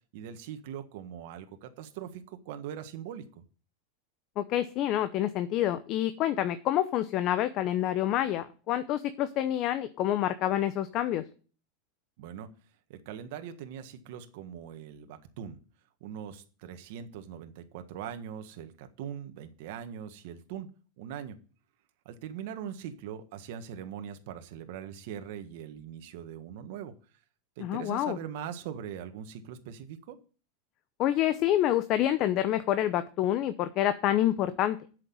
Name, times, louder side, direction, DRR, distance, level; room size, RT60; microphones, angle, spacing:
voice 1, 0.1-3.4 12.2-12.5 12.9-15.6 16.0-20.7 21.0-21.4 22.0-26.9 27.6-30.2, right 9 dB, 65° right, 8 dB, 1.5 m, -41 dB
voice 2, 4.4-11.2 27.6-28.2 31.0-34.8, left 12 dB, 45° left, 11 dB, 0.8 m, -27 dB
8.0 x 6.5 x 7.9 m, 0.38 s
supercardioid pair, 125°, 0 cm